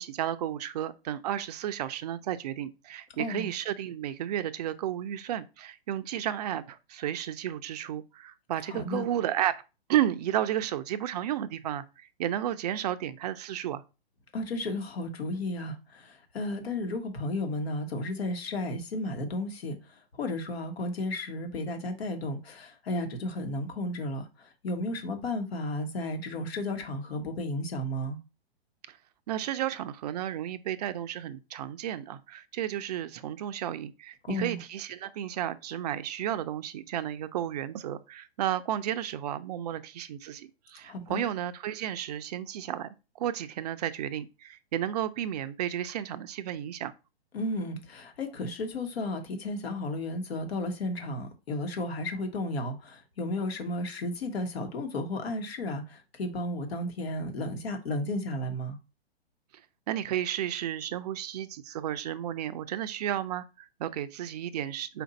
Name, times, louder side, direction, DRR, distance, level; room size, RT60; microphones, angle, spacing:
voice 1, 0.0-9.6 9.9-13.8 28.9-29.0 29.3-42.9 43.2-46.9 59.9-65.0, right 11 dB, 40° right, 0.4 m, -32 dB
voice 2, 3.1-3.5 8.7-9.0 14.3-19.8 20.2-28.2 34.3-34.6 40.8-41.2 47.3-58.8, left 1 dB, 70° left, 1.3 m, -33 dB
4.4 x 2.6 x 3.9 m
hypercardioid pair, 130°, 32 cm